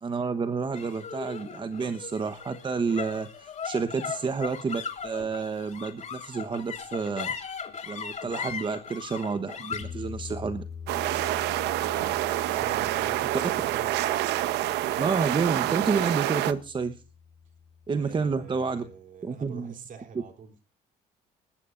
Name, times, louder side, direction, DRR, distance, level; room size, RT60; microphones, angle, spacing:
voice 1, 0.0-7.3 7.9-10.6 15.0-17.0 17.9-18.9 19.2-19.7, right 5 dB, 30° right, 10 dB, 1.1 m, -29 dB
sound 1, 0.7-17.3, left 6 dB, 45° left, 3.1 m, -39 dB
sound 2, 10.9-16.5, right 14 dB, 85° right, 0.9 m, -27 dB
voice 2, 11.9-12.3 12.6-14.2 17.9-20.5, right 6 dB, 50° right, 6 dB, 3.4 m, -45 dB
20.0 x 15.5 x 2.6 m, 0.36 s
cardioid pair, 110°, 17 cm